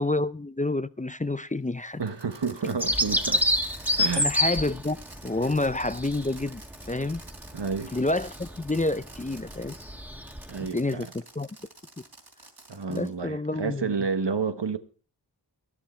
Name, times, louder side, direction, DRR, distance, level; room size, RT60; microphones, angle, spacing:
voice 1, 0.0-2.0 4.2-5.0 5.2-6.6 6.9-7.2 7.9-9.8 10.7-11.1 11.4-11.5 12.9-13.9, left 2 dB, 20° left, 0.5 m, -28 dB
Fireworks, 2.0-9.8 10.3-13.1, right 2 dB, 70° right, 3.4 m, -49 dB
voice 2, 2.0-3.4 4.0-4.3 7.5-7.9 10.5-11.1 12.7-14.8, right 5 dB, 85° right, 1.1 m, -30 dB
Bird vocalization bird call bird song, 2.8-10.7, left 1 dB, 5° right, 1.6 m, -29 dB
13.0 x 11.5 x 4.3 m
wide cardioid pair, 40°, 41 cm